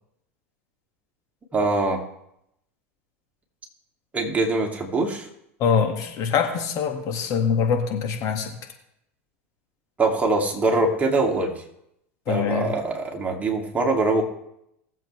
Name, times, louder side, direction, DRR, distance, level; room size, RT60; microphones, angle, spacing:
voice 1, 1.5-2.0 4.1-5.3 10.0-11.5 12.3-14.2, right 2 dB, 20° right, 0 dB, 2.6 m, -23 dB
voice 2, 5.6-8.5 12.3-12.7, left 6 dB, 50° left, 4 dB, 2.0 m, -24 dB
20.0 x 7.6 x 3.4 m, 0.79 s
hypercardioid pair, 90°, 8 cm